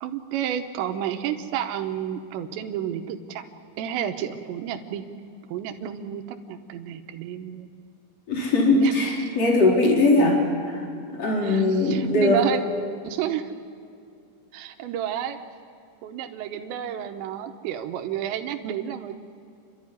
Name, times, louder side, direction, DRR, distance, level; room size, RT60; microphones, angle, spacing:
voice 1, 0.0-3.4 3.8-5.0 5.5-7.7 8.7-9.1 11.4-12.6 13.0-13.5 14.5-15.4 16.0-19.2, right 10 dB, 80° right, 5 dB, 3.1 m, -30 dB
voice 2, 8.3-10.8 11.1-12.4, left 2 dB, 35° left, -2 dB, 4.8 m, -20 dB
29.5 x 12.5 x 9.7 m, 2.4 s
omnidirectional pair, 5.3 m